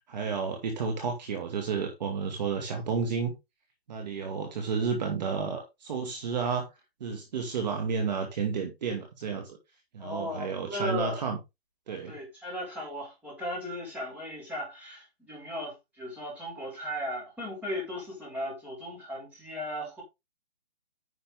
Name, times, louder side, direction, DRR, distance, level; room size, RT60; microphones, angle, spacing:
voice 1, 0.1-3.3 3.9-6.7 7.0-9.6 9.9-11.4 11.9-12.2, right 5 dB, 45° right, 2.3 m, -31 dB
voice 2, 10.0-11.2 11.9-20.0, equal, 5° right, 5.3 m, -36 dB
10.0 x 6.4 x 3.7 m
hypercardioid pair, 160°, 31 cm